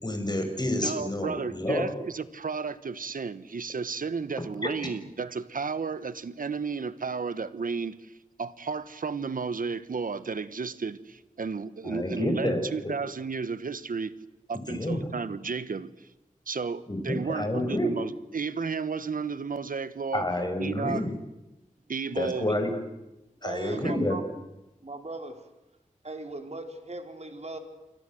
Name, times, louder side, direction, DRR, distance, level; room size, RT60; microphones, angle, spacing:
voice 1, 0.0-1.8 11.8-12.6 14.7-15.0 16.9-17.9 20.1-21.1 22.2-22.7 23.4-24.2, left 1 dB, 30° left, 6 dB, 6.6 m, -29 dB
voice 2, 0.8-8.1 8.4-14.1 14.5-16.1 16.5-20.2 20.6-21.0 21.9-22.5 23.7-24.0, right 5 dB, 85° right, 14 dB, 1.3 m, -33 dB
voice 3, 23.4-24.3 24.8-25.4 26.0-27.6, right 2 dB, 50° right, 5 dB, 4.4 m, -38 dB
29.5 x 24.5 x 7.9 m, 0.99 s
wide cardioid pair, 55°, 14 cm